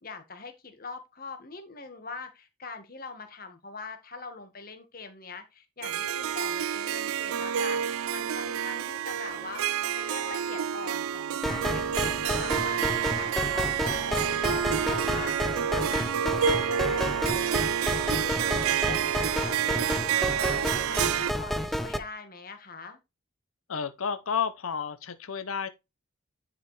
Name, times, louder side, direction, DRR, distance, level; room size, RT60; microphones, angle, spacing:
voice 1, 0.0-9.6 10.0-17.9 18.2-23.0, left 4 dB, 45° left, 1.6 m, -42 dB
Harp, 5.8-21.3, right 9 dB, 90° right, 0.4 m, -29 dB
sound 1, 11.4-22.0, equal, ahead, 0.5 m, -31 dB
voice 2, 23.7-25.7, left 6 dB, 85° left, 0.7 m, -31 dB
10.0 x 4.8 x 3.2 m
head